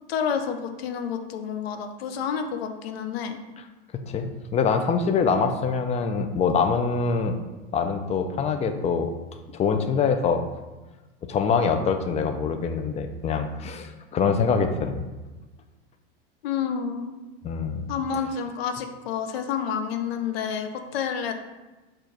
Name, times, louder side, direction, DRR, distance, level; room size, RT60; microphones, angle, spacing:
voice 1, 0.1-3.4 16.4-17.1 17.9-21.3, left 7 dB, 80° left, 6 dB, 0.6 m, -29 dB
voice 2, 4.1-7.3 7.7-9.1 9.5-10.4 11.2-15.0 17.4-17.8, left 5 dB, 20° left, 7 dB, 0.4 m, -24 dB
4.6 x 2.5 x 4.5 m, 1.2 s
hypercardioid pair, 105°, 30 cm